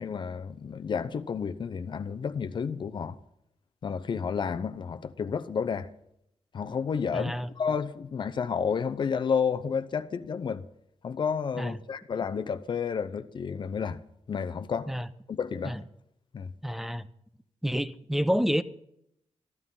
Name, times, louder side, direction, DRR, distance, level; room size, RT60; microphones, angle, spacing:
voice 1, 0.0-3.2 3.8-5.9 6.5-10.7 11.0-14.0 14.3-14.9 15.3-15.8 16.3-16.5, left 6 dB, 45° left, 0.8 m, -31 dB
voice 2, 7.1-7.5 11.6-11.8 14.9-15.1 15.6-15.8 16.6-17.1 17.6-18.6, equal, ahead, 0.6 m, -28 dB
15.0 x 12.5 x 5.6 m
wide cardioid pair, 170°, 11 cm